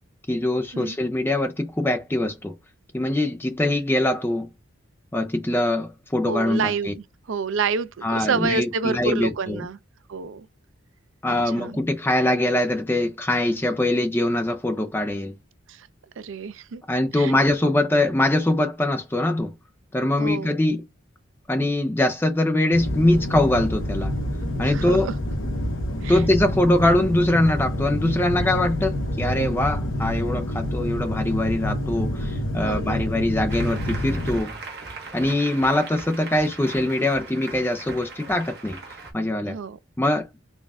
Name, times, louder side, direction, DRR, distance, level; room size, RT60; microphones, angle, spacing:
voice 1, 0.3-2.5 2.9-4.5 5.1-6.9 8.0-9.6 11.2-15.3 16.9-19.5 19.9-20.8 21.5-24.1 24.6-25.1 26.1-34.6 35.1-38.8 39.1-39.5 40.0-40.2, left 1 dB, 10° left, 0.4 m, -23 dB
voice 2, 6.2-6.9 7.3-9.8 10.1-10.5 11.3-11.8 15.7-15.9 16.2-16.8 17.1-17.4 20.2-20.6 24.6-25.1 26.0-26.2 32.6-33.0 39.5-39.8, right 5 dB, 70° right, 0.4 m, -28 dB
sound 1, 22.7-34.4, left 1 dB, 70° left, 1.0 m, -27 dB
Applause, 33.5-39.1, right 3 dB, 50° right, 1.3 m, -39 dB
4.0 x 2.4 x 3.4 m
head